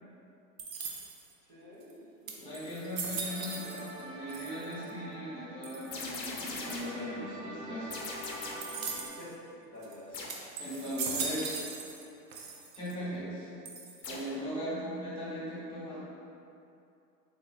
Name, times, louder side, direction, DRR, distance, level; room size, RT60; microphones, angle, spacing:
sound 1, 0.6-1.3 1.9-2.0 2.3-4.0 4.3-4.9 5.6-6.1 8.6-9.3 9.8-9.9 10.3-12.1 12.3-12.9 13.7-14.2, right 4 dB, 55° right, 0.7 m, -39 dB
voice 1, 1.5-2.7 9.2-9.3 9.7-10.2 14.1-14.3, left 1 dB, 15° right, -15 dB, 0.3 m, -50 dB
voice 2, 2.4-7.9 10.6-11.6 12.8-13.5 14.1-16.2, equal, 10° left, -9 dB, 1.2 m, -39 dB
sound 2, 3.2-9.1, right 1 dB, 75° right, 1.0 m, -45 dB
sound 3, 5.9-7.1 7.9-8.8 10.1-10.5 14.0-14.4, left 3 dB, 80° left, 0.8 m, -41 dB
4.2 x 3.7 x 2.4 m, 2.6 s
figure-of-eight pair, 105°, 49 cm